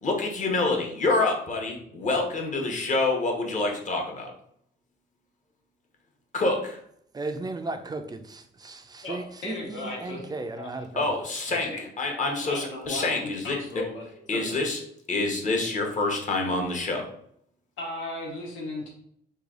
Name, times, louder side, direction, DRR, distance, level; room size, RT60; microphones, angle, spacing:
voice 1, 0.0-4.3 6.3-6.8 11.0-11.7 12.0-13.8 14.3-14.8 15.1-17.1, left 2 dB, 40° left, 0.9 m, -27 dB
voice 2, 7.1-11.1, right 2 dB, 20° right, 0.4 m, -36 dB
voice 3, 9.4-10.2 10.6-11.1 11.6-11.9 12.4-14.0 14.3-14.5 17.8-18.9, left 1 dB, 80° left, 1.2 m, -36 dB
3.2 x 2.3 x 3.7 m
cardioid pair, 90°, 20 cm